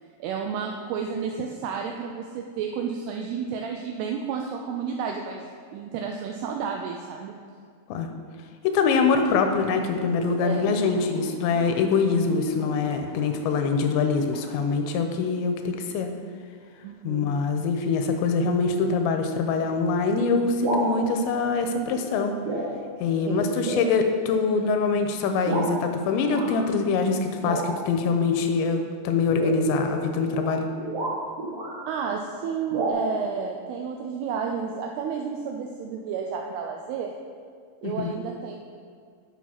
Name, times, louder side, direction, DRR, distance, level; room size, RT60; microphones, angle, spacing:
voice 1, 0.2-5.5 5.7-7.3 10.4-10.7 16.8-17.3 23.3-23.6 31.9-37.2 37.8-38.6, right 6 dB, 85° right, 2 dB, 2.3 m, -31 dB
voice 2, 8.6-16.1 17.0-22.3 23.0-30.7 37.8-38.1, left 4 dB, 90° left, 5 dB, 3.0 m, -24 dB
sound 1, 9.2-14.6, left 2 dB, 35° left, 1.0 m, -41 dB
sound 2, 20.6-20.9 21.8-22.1 22.4-22.7 23.1-23.2 23.6-23.9 24.6-24.7 25.4-25.7 26.3-26.6 27.4-27.9 29.2-31.8 32.7-32.9, right 2 dB, 55° right, 1.8 m, -30 dB
8.6 x 7.0 x 5.8 m, 2.2 s
omnidirectional pair, 5.2 m